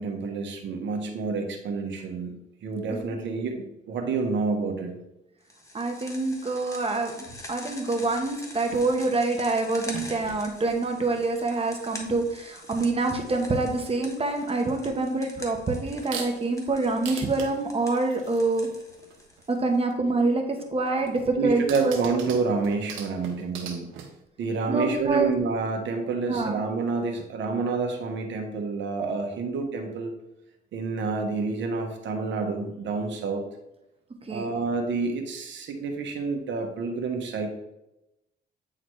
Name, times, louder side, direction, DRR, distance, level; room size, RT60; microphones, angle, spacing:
voice 1, 0.0-2.3 2.6-4.9 21.4-23.9 24.4-30.1 30.7-33.4 34.3-37.5, right 4 dB, 70° right, 4 dB, 1.1 m, -28 dB
sound 1, 5.5-19.8, left 1 dB, 15° left, 1.4 m, -45 dB
voice 2, 5.7-18.7 19.5-22.0 24.7-25.4 26.3-26.6 34.2-34.5, right 3 dB, 30° right, 4 dB, 1.1 m, -26 dB
sound 2, 8.2-9.2 9.7-12.2 12.5-13.6 13.9-14.5 15.1-15.3 15.8-16.6 17.0-19.9 20.6-24.2, right 6 dB, 90° right, 1.0 m, -42 dB
8.9 x 3.9 x 3.2 m, 0.89 s
cardioid pair, 90°, 20 cm